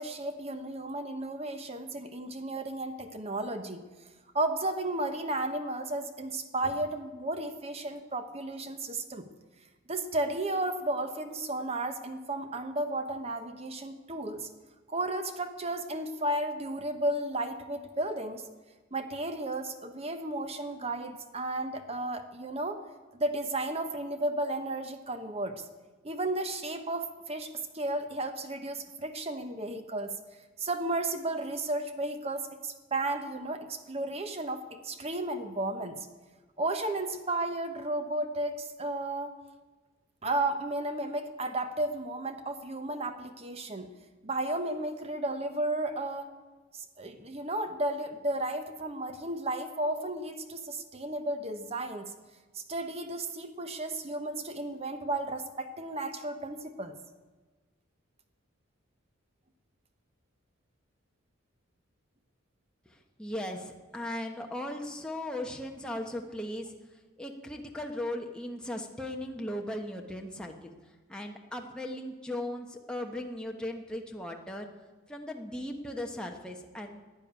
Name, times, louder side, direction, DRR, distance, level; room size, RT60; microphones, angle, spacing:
voice 1, 0.0-3.8 4.3-9.3 9.9-14.5 14.9-18.4 18.9-22.8 23.2-25.6 26.0-30.2 30.6-36.1 36.6-39.4 40.2-43.9 44.2-46.3 46.7-52.1 52.5-56.9, right 2 dB, 30° right, 8 dB, 0.9 m, -33 dB
voice 2, 62.9-66.7 67.2-70.7 71.1-74.7 75.1-77.0, left 1 dB, 5° left, 1 dB, 1.0 m, -37 dB
12.0 x 9.2 x 10.0 m, 1.3 s
head